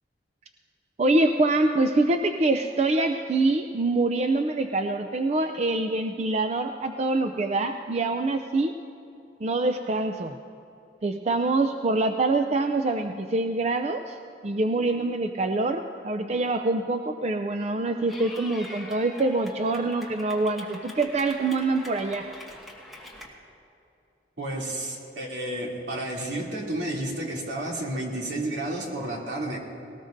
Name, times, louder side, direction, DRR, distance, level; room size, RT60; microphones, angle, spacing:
voice 1, 1.0-8.7 9.4-10.3 11.0-14.2 14.4-22.3, right 2 dB, 35° right, 6 dB, 0.4 m, -25 dB
Clapping / Cheering, 18.1-23.3, left 1 dB, ahead, 1.6 m, -44 dB
voice 2, 24.4-29.6, right 1 dB, 75° right, -3 dB, 2.7 m, -31 dB
19.5 x 18.5 x 2.6 m, 2.7 s
head